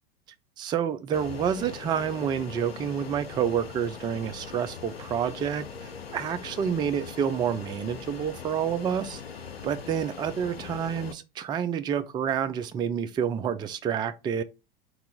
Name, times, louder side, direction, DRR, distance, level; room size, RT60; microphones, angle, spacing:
voice 1, 0.6-9.2 9.6-14.4, right 8 dB, 15° right, 0.3 m, -29 dB
Fixed-wing aircraft airplane, 1.1-11.1, left 6 dB, 85° left, 0.6 m, -41 dB
3.3 x 3.0 x 3.6 m
figure-of-eight pair, 85°, 29 cm